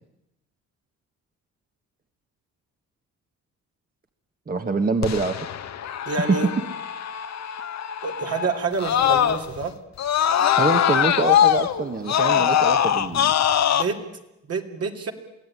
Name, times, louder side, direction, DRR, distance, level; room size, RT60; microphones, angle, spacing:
voice 1, 4.5-5.4 6.3-6.4 10.6-13.3, right 3 dB, 30° right, 6 dB, 1.6 m, -25 dB
Screaming, 5.0-9.6 10.0-13.8, left 10 dB, 60° left, 1.4 m, -22 dB
voice 2, 6.1-6.5 8.0-9.8 13.7-14.0 14.5-15.1, right 4 dB, 55° right, 4 dB, 3.0 m, -27 dB
23.5 x 16.5 x 9.9 m, 0.89 s
cardioid pair, 90°, 30 cm